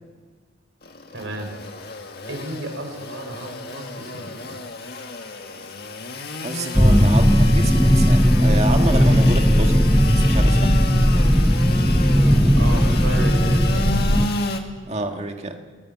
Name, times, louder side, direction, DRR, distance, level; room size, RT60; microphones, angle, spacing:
Engine / Sawing, 0.8-14.6, left 3 dB, 55° left, 1.8 m, -31 dB
voice 1, 1.1-1.6 2.3-4.6 12.6-13.9, right 1 dB, 80° right, 4 dB, 4.8 m, -33 dB
voice 2, 6.4-10.7 14.9-15.6, right 2 dB, 35° right, 4 dB, 1.8 m, -28 dB
sound 1, 6.8-14.3, equal, ahead, 0.8 m, -16 dB
23.0 x 17.5 x 7.6 m, 1.5 s
head